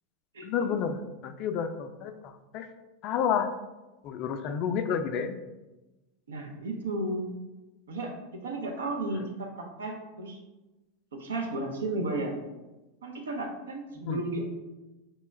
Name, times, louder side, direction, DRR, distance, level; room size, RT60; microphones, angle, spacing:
voice 1, 0.4-2.7 3.0-3.5 4.0-5.4 14.0-14.2, left 7 dB, 50° left, 9 dB, 0.3 m, -30 dB
voice 2, 6.3-7.3 7.9-8.1 8.4-10.4 11.1-12.4 13.0-14.4, right 2 dB, 80° right, 1 dB, 0.6 m, -33 dB
4.3 x 2.2 x 3.1 m, 1.1 s
hypercardioid pair, 95°, 0 cm